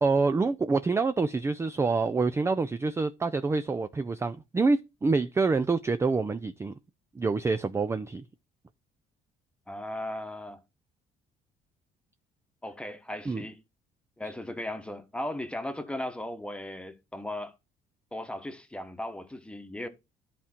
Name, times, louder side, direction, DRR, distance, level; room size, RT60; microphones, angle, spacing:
voice 1, 0.0-6.7 7.2-8.2 13.3-13.4, right 4 dB, 15° right, 0.4 m, -26 dB
voice 2, 9.7-10.6 12.6-13.6 14.2-17.5 18.1-19.9, left 1 dB, 5° left, 1.2 m, -37 dB
11.0 x 3.7 x 4.3 m
cardioid pair, 110°, 17 cm